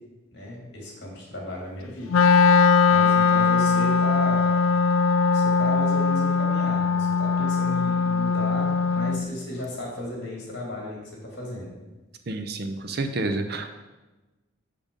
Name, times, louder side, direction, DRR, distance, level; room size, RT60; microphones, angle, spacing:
voice 1, 0.3-2.2 2.9-4.5 5.3-11.7, left 1 dB, 55° left, -2 dB, 2.5 m, -35 dB
Wind instrument woodwind instrument, 2.1-9.3, left 5 dB, 85° left, 0.4 m, -20 dB
voice 2, 12.3-13.7, right 2 dB, 50° right, 7 dB, 0.6 m, -29 dB
6.7 x 5.2 x 5.3 m, 1.1 s
head